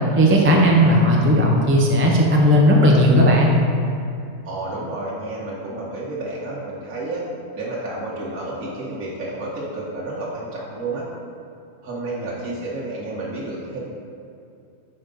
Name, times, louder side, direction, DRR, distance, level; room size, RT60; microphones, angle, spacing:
voice 1, 0.2-3.5, equal, 20° right, -2 dB, 0.4 m, -15 dB
voice 2, 4.4-7.2 7.6-11.1 11.8-13.8, right 2 dB, 85° right, -7 dB, 1.5 m, -30 dB
5.0 x 4.5 x 5.2 m, 2.6 s
omnidirectional pair, 1.4 m